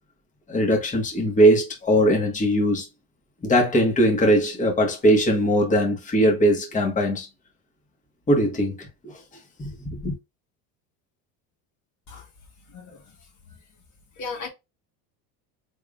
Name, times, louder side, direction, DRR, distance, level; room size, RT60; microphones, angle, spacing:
voice 1, 0.5-2.9 3.4-7.3 8.3-9.1 9.6-10.1, equal, 15° left, 1.2 m, -20 dB
voice 2, 12.7-13.0 14.2-14.5, left 4 dB, 40° left, 1.2 m, -35 dB
3.6 x 3.4 x 2.3 m
supercardioid pair, 110°, 44 cm